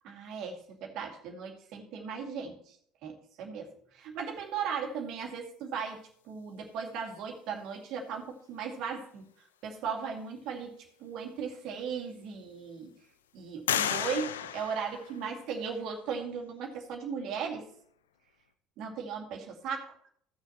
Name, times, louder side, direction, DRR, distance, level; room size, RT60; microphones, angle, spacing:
voice 1, 0.0-2.8 3.0-9.3 9.6-10.7 11.0-12.9 13.3-17.7 18.8-20.0, right 6 dB, 60° right, 2 dB, 2.3 m, -37 dB
sound 1, 11.4-11.5 12.1-12.7 13.7-15.6, left 9 dB, 85° left, 0.5 m, -34 dB
16.5 x 6.7 x 3.0 m, 0.66 s
hypercardioid pair, 65°, 0 cm